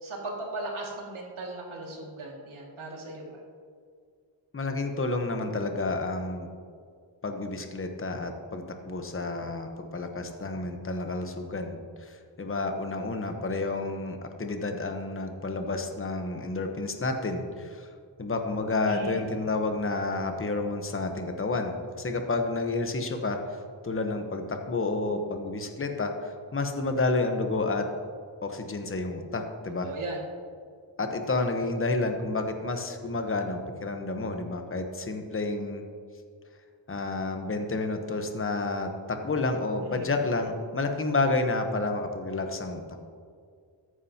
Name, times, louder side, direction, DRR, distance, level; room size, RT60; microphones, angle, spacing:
voice 1, 0.0-3.4 18.9-19.2 29.8-30.3 39.8-40.1, right 2 dB, 80° right, -2 dB, 2.3 m, -37 dB
voice 2, 4.5-6.5 7.2-17.9 18.2-23.6 23.8-27.9 28.4-29.9 31.0-35.8 36.9-43.1, left 3 dB, 25° left, 5 dB, 1.0 m, -30 dB
13.5 x 9.7 x 2.9 m, 2.1 s
wide cardioid pair, 100°, 48 cm